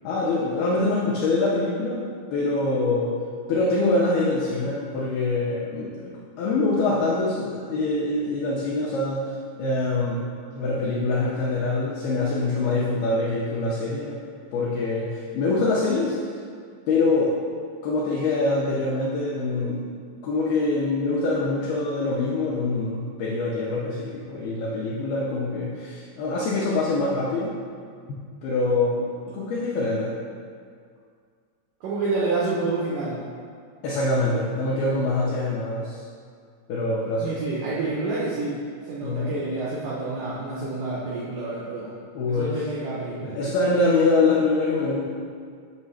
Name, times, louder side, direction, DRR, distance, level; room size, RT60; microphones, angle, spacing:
voice 1, 0.0-3.1 3.5-10.3 10.6-14.2 14.5-16.2 16.9-17.3 17.8-19.9 20.2-27.6 28.1-30.1 33.8-36.0 36.7-37.3 39.0-39.4 42.2-42.5 43.4-45.0, left 2 dB, 85° left, -5 dB, 2.1 m, -24 dB
voice 2, 31.8-33.2 37.2-41.9 42.3-43.4, right 3 dB, 90° right, -6 dB, 1.9 m, -28 dB
8.7 x 3.2 x 6.2 m, 2.1 s
omnidirectional pair, 5.4 m